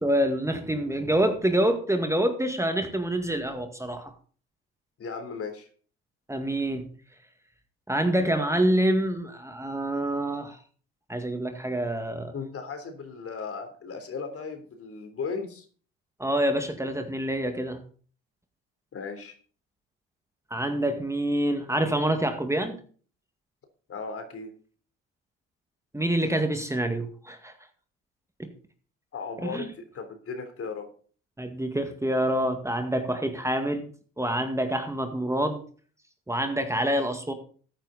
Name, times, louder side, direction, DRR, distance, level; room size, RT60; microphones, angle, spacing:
voice 1, 0.0-4.1 6.3-6.9 7.9-10.6 11.1-12.3 16.2-17.8 20.5-22.8 25.9-27.5 28.4-28.5 29.4-29.7 31.4-33.9 34.2-35.6 36.3-37.3, right 1 dB, 10° right, 6 dB, 2.0 m, -26 dB
voice 2, 5.0-5.7 12.3-15.7 18.9-19.4 23.9-24.5 29.1-30.9, left 5 dB, 50° left, 7 dB, 3.6 m, -36 dB
14.5 x 9.1 x 4.1 m, 0.43 s
hypercardioid pair, 65°, 30 cm